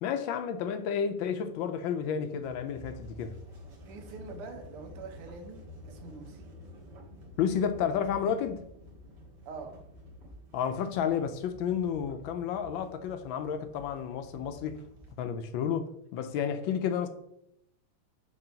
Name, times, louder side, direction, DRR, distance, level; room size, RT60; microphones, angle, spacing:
voice 1, 0.0-3.3 7.4-8.6 10.5-14.8 15.2-17.1, left 8 dB, 75° left, 1.3 m, -31 dB
sound 1, 2.4-15.2, equal, 55° right, 1.9 m, -50 dB
voice 2, 3.9-6.4 9.5-9.8, right 4 dB, 80° right, 1.9 m, -44 dB
6.6 x 3.1 x 5.7 m
omnidirectional pair, 2.4 m